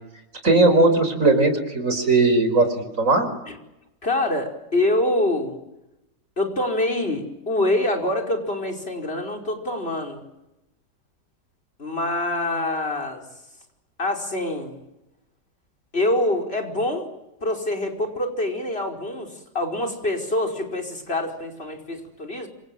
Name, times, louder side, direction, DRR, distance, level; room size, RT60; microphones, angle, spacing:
voice 1, 0.4-3.3, right 2 dB, 50° right, 8 dB, 5.3 m, -18 dB
voice 2, 4.0-5.6 6.4-10.2 11.8-13.3 14.0-14.8 15.9-17.1 17.4-22.5, left 1 dB, 35° left, 2 dB, 5.3 m, -25 dB
28.5 x 26.0 x 7.8 m, 0.92 s
omnidirectional pair, 1.7 m